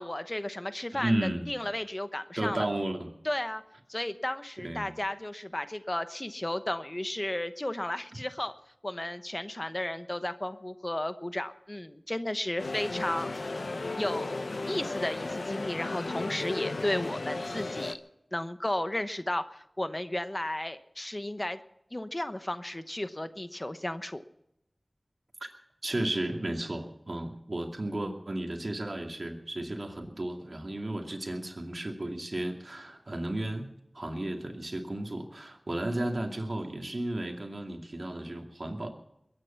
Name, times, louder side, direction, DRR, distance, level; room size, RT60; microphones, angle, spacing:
voice 1, 0.0-1.2 1.5-2.6 3.2-3.6 3.9-8.5 8.8-13.6 14.0-18.0 18.3-21.6 21.9-24.2, left 1 dB, 35° left, 10 dB, 0.9 m, -34 dB
voice 2, 0.9-1.5 2.4-3.1 4.6-4.9 25.8-33.7 33.9-38.9, right 1 dB, 60° right, 3 dB, 2.4 m, -33 dB
sound 1, 12.6-18.0, left 2 dB, 85° left, 0.8 m, -35 dB
22.0 x 9.7 x 5.8 m, 0.79 s
wide cardioid pair, 40°, 0 cm